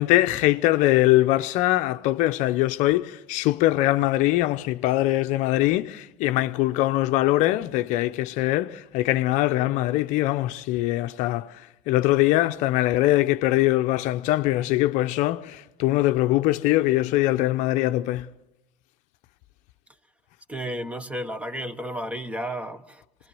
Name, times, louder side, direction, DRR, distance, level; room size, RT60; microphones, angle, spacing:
voice 1, 0.0-11.5 11.9-18.3, left 16 dB, 55° left, 0.7 m, -22 dB
voice 2, 20.5-23.3, equal, 10° right, 1.1 m, -33 dB
24.0 x 20.0 x 7.7 m
supercardioid pair, 115°, 15 cm